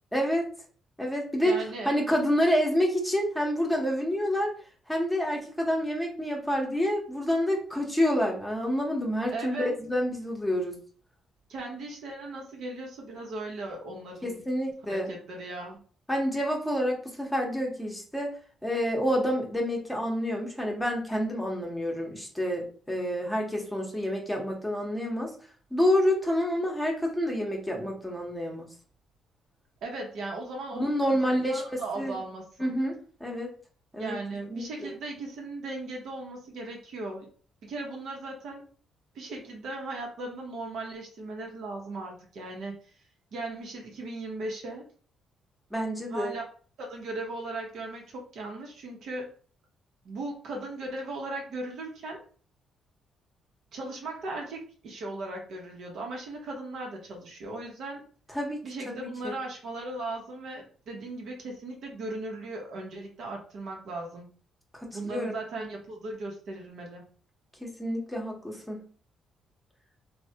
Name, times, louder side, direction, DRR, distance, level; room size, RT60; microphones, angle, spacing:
voice 1, 0.1-0.4 1.0-1.6 1.8-4.5 4.9-10.8 14.2-15.1 16.1-18.3 18.6-25.3 25.7-28.7 30.7-31.6 32.0-32.2 32.6-33.5 33.9-34.1 34.5-34.9 45.7-46.3 58.3-59.3 64.7-65.3 67.6-68.8, equal, 5° left, 0 dB, 0.8 m, -28 dB
voice 2, 1.4-2.0 9.3-9.7 11.5-14.5 14.9-15.8 29.8-32.7 34.0-37.3 37.6-38.6 39.1-42.7 43.3-44.9 46.1-46.4 46.8-49.3 50.0-52.2 53.7-58.0 58.6-64.3 64.9-67.0, right 2 dB, 70° right, 1 dB, 0.8 m, -37 dB
3.1 x 2.1 x 2.7 m, 0.43 s
cardioid pair, 90°, 0 cm